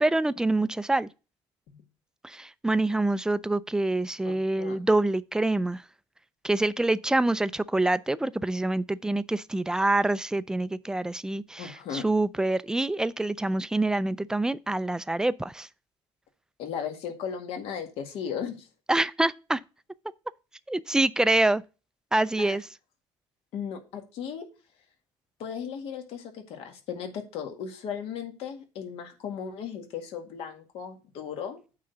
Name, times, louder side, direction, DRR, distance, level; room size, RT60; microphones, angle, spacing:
voice 1, 0.0-1.1 2.2-5.8 6.4-15.7 18.9-19.6 20.7-21.6 22.1-22.6, right 2 dB, 5° right, 0.3 m, -26 dB
voice 2, 4.3-4.8 11.6-12.0 16.6-18.7 22.4-22.6 23.5-24.5 25.4-31.6, left 7 dB, 75° left, 1.9 m, -36 dB
8.7 x 3.8 x 6.9 m
cardioid pair, 135°, 10 cm